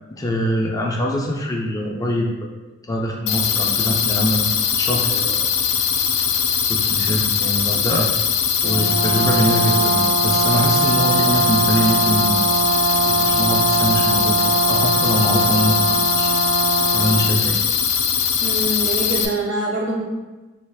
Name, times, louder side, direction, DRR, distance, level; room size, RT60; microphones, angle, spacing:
voice 1, 0.1-2.5 2.9-5.4 6.7-8.1 8.6-12.4 13.0-16.3 16.9-17.6, equal, 20° left, -1 dB, 0.3 m, -23 dB
sound 1, 3.3-19.3, left 7 dB, 85° left, 0.4 m, -21 dB
Brass instrument, 8.6-17.3, right 5 dB, 55° right, 0.6 m, -22 dB
voice 2, 18.4-20.0, right 1 dB, 70° right, -4 dB, 1.2 m, -24 dB
3.2 x 2.7 x 3.4 m, 1.2 s
head